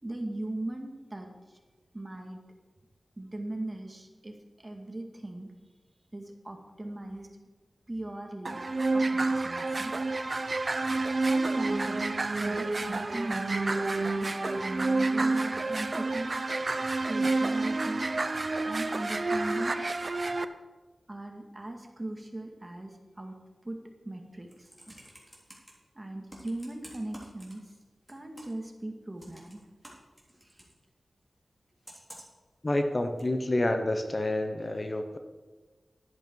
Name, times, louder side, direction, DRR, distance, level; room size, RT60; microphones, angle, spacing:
voice 1, 0.0-1.6 1.9-2.4 3.2-5.5 6.1-7.3 7.9-8.6 8.9-9.9 11.2-12.0 12.3-13.6 13.9-14.3 14.5-16.3 17.0-18.1 18.6-19.8 21.1-23.4 23.6-23.8 24.0-25.1 26.0-27.7 28.1-29.6 30.4-30.6, right 1 dB, 25° right, 3 dB, 1.9 m, -39 dB
sound 1, 8.4-20.4, right 3 dB, 45° right, 0.6 m, -29 dB
Computer keyboard, 24.3-25.7 26.3-27.8 28.1-28.7 29.2-30.7 31.8-32.4 33.2-33.3, equal, ahead, 3.3 m, -50 dB
voice 2, 32.6-35.2, left 1 dB, 35° left, 6 dB, 0.9 m, -28 dB
11.5 x 10.5 x 4.6 m, 1.3 s
wide cardioid pair, 85°, 0 cm